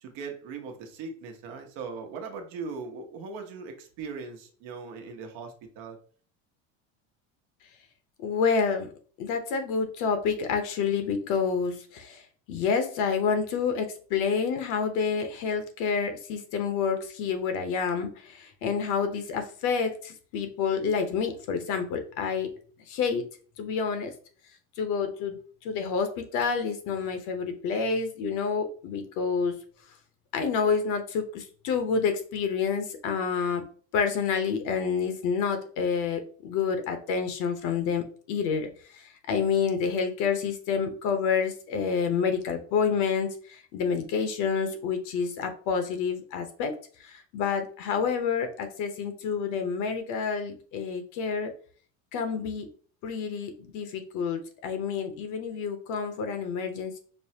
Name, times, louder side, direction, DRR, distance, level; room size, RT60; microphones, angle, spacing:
voice 1, 0.0-6.0, right 4 dB, 70° right, 4 dB, 0.9 m, -39 dB
voice 2, 8.2-8.9 9.2-12.2 12.5-22.5 22.9-23.2 23.6-24.1 24.8-25.4 25.6-29.5 30.3-33.6 33.9-38.7 39.3-46.7 47.1-51.5 52.1-52.7 53.0-57.0, left 6 dB, 60° left, 7 dB, 0.9 m, -28 dB
5.3 x 2.1 x 2.7 m, 0.43 s
supercardioid pair, 120°, 34 cm